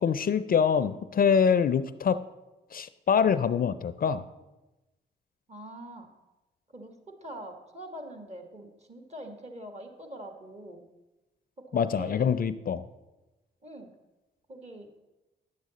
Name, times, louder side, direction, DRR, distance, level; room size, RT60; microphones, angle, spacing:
voice 1, 0.0-2.2 2.7-4.2 11.7-12.8, left 7 dB, 50° left, 14 dB, 0.4 m, -25 dB
voice 2, 5.5-6.1 6.7-10.8 11.6-12.3 13.6-13.9 14.5-14.9, right 1 dB, 35° right, 5 dB, 1.6 m, -44 dB
9.5 x 7.4 x 4.0 m, 1.0 s
supercardioid pair, 50°, 19 cm